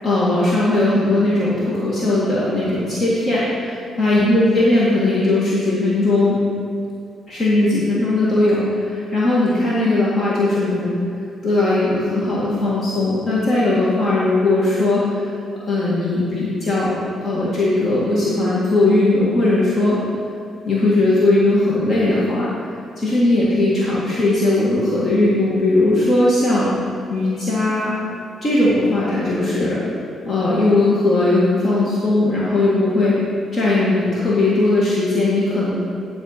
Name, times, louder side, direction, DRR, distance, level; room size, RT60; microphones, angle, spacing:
voice 1, 0.0-6.4 7.3-10.9 11.4-15.4 15.7-16.9 17.2-20.0 20.6-22.5 23.0-26.7 27.1-27.9 28.4-29.8 30.2-33.2 33.5-35.7, left 2 dB, 45° left, -7 dB, 1.8 m, -18 dB
10.5 x 4.5 x 5.7 m, 2.5 s
cardioid pair, 90°, 0 cm